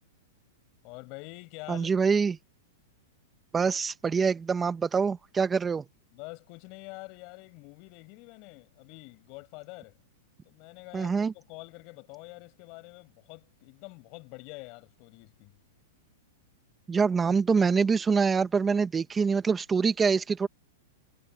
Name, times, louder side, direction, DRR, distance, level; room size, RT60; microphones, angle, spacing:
voice 1, 0.8-1.9 6.1-10.0 10.4-15.6, left 28 dB, 45° left, 5.4 m, -46 dB
voice 2, 1.7-2.4 3.5-5.8 10.9-11.3 16.9-20.5, right 5 dB, 15° right, 1.0 m, -25 dB
hypercardioid pair, 135°, 0 cm